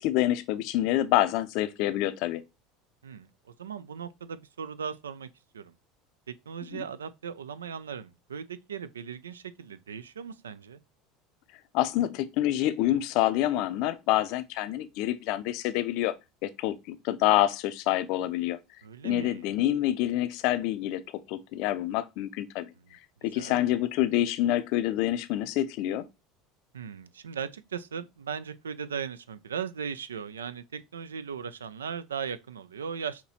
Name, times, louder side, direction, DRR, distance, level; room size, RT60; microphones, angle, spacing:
voice 1, 0.0-2.4 6.7-6.8 11.7-16.1 16.4-18.6 19.0-21.0 21.3-22.7 22.9-26.1, left 14 dB, 60° left, 0.4 m, -27 dB
voice 2, 3.0-5.3 5.5-5.7 6.3-10.8 18.8-19.5 23.3-23.6 26.7-33.3, right 7 dB, 80° right, 0.3 m, -38 dB
5.8 x 2.9 x 2.8 m
figure-of-eight pair, 70°, 0 cm